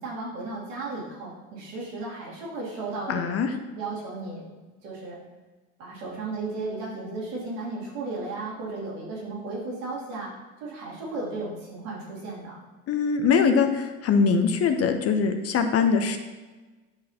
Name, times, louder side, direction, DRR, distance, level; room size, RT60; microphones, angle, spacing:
voice 1, 0.0-3.4 3.7-4.5 4.8-5.2 5.8-10.3 10.6-12.6, right 3 dB, 65° right, -5 dB, 2.7 m, -34 dB
voice 2, 3.1-3.5 12.9-16.2, left 5 dB, 35° left, 7 dB, 0.8 m, -22 dB
10.5 x 6.3 x 2.8 m, 1.3 s
figure-of-eight pair, 60°, 40 cm